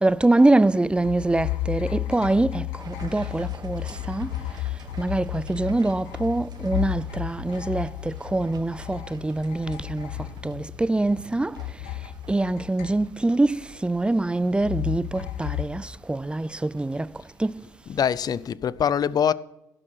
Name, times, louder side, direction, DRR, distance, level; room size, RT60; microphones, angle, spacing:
voice 1, 0.0-4.3 5.0-10.1 10.4-11.6 12.3-17.1 17.4-17.6, right 2 dB, 10° right, 0.4 m, -24 dB
sound 1, 1.0-11.2 11.6-13.4 14.6-15.6, left 15 dB, 80° left, 0.9 m, -33 dB
sound 2, 2.8-18.4, right 5 dB, 45° right, 1.4 m, -51 dB
voice 2, 17.9-19.3, left 8 dB, 40° left, 0.5 m, -23 dB
16.0 x 6.1 x 6.2 m
hypercardioid pair, 60°, 10 cm